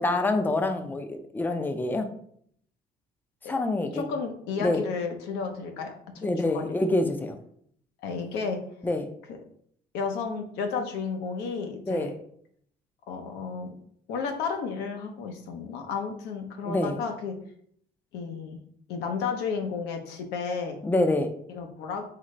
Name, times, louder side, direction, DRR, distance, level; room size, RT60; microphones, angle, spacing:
voice 1, 0.0-2.1 3.5-4.0 4.6-4.8 6.2-7.4 8.8-9.1 11.9-12.1 16.6-17.0 20.8-21.3, left 2 dB, 10° left, 7 dB, 0.5 m, -26 dB
voice 2, 3.9-6.3 6.5-6.6 8.0-8.6 9.9-12.1 13.1-13.7 14.1-17.4 18.1-18.6 18.9-20.8 21.5-22.1, left 5 dB, 90° left, 4 dB, 0.8 m, -32 dB
3.9 x 3.7 x 3.2 m, 0.64 s
cardioid pair, 110°, 17 cm